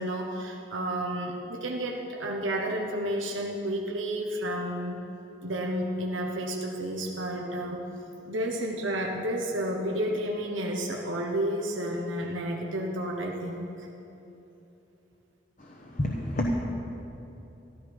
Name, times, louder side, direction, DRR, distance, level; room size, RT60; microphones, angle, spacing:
voice 1, 0.0-5.0 5.4-7.8 8.3-13.9, right 1 dB, 85° right, 0 dB, 1.1 m, -31 dB
voice 2, 15.6-16.5, left 1 dB, 40° left, -1 dB, 1.1 m, -29 dB
14.0 x 12.0 x 5.3 m, 3.0 s
head